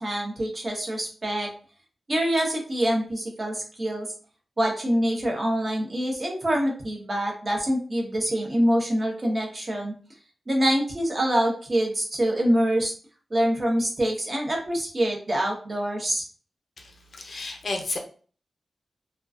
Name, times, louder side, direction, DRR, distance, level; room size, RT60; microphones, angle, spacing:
voice 1, 0.0-1.5 2.1-4.1 4.6-9.9 10.5-12.9 13.3-16.2, equal, 35° right, 0 dB, 0.8 m, -25 dB
voice 2, 16.8-18.0, left 2 dB, 60° left, 2 dB, 0.5 m, -32 dB
2.3 x 2.2 x 2.4 m, 0.41 s
wide cardioid pair, 90°, 0 cm